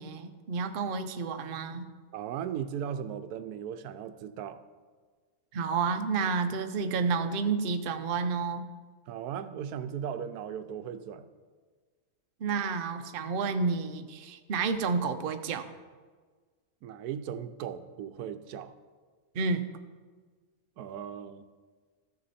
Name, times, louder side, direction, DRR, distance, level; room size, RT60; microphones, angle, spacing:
voice 1, 0.0-1.9 5.5-8.7 12.4-15.6 19.3-19.7, right 5 dB, 50° right, 7 dB, 0.6 m, -30 dB
voice 2, 2.1-4.6 9.1-11.3 16.8-18.7 20.8-21.5, right 8 dB, 85° right, 11 dB, 1.1 m, -37 dB
14.0 x 6.8 x 4.2 m, 1.5 s
omnidirectional pair, 1.6 m